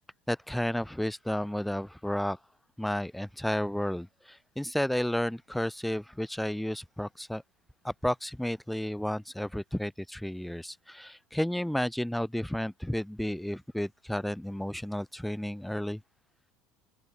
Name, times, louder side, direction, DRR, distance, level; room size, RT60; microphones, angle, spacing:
voice 1, 0.3-2.4 2.8-7.4 7.8-16.0, left 1 dB, ahead, 0.4 m, -32 dB
open air
supercardioid pair, 120°, 4 cm